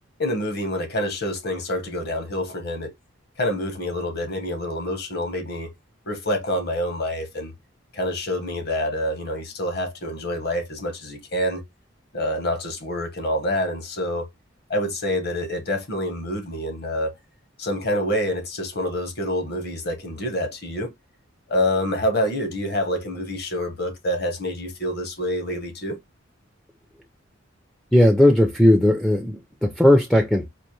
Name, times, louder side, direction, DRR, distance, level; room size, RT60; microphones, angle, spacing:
voice 1, 0.2-2.9 3.4-5.7 6.1-7.5 7.9-11.6 12.1-14.3 14.7-17.1 17.6-20.9 21.5-26.0, left 1 dB, 50° left, 1.0 m, -27 dB
voice 2, 27.9-30.5, left 1 dB, ahead, 0.4 m, -17 dB
4.3 x 2.5 x 3.1 m
head